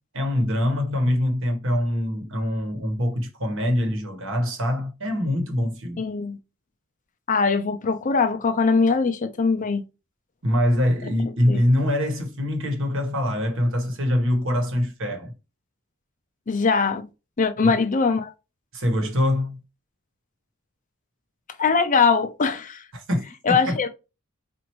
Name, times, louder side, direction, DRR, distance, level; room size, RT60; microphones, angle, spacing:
voice 1, 0.1-6.0 10.4-15.3 17.6-17.8 18.7-19.6 22.9-23.2 23.5-23.8, left 1 dB, 60° right, 1.2 m, -24 dB
voice 2, 6.0-6.4 7.3-9.8 11.5-11.6 16.5-17.0 17.4-18.3 21.6-22.8 23.4-23.9, left 5 dB, 35° left, 0.5 m, -21 dB
4.3 x 2.6 x 3.0 m
head